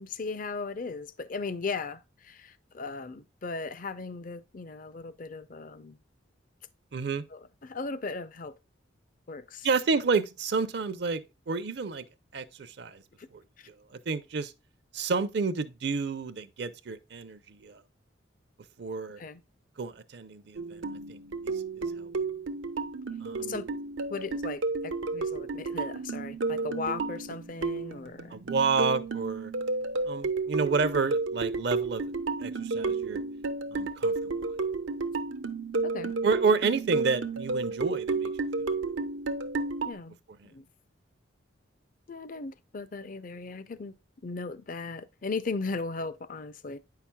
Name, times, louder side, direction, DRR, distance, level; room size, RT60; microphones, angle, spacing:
voice 1, 0.0-6.0 7.3-8.6 9.3-9.7 13.2-13.3 13.6-13.7 19.2-19.4 23.4-23.7 24.1-28.4 35.8-36.1 39.8-40.2 40.4-40.7 42.1-44.0 44.2-46.8, left 4 dB, 45° left, 0.5 m, -37 dB
voice 2, 6.9-7.2 9.6-11.2 11.5-12.0 12.3-13.0 13.3-13.4 13.9-14.5 14.9-17.8 18.8-19.2 19.8-20.8 21.1-21.5 22.0-22.1 23.2-23.6 28.3-29.5 30.1-32.1 32.4-33.2 33.7-34.6 36.2-38.3, right 4 dB, 60° right, 0.6 m, -30 dB
sound 1, 20.6-39.9, right 3 dB, 85° right, 0.8 m, -32 dB
9.0 x 5.8 x 2.2 m
head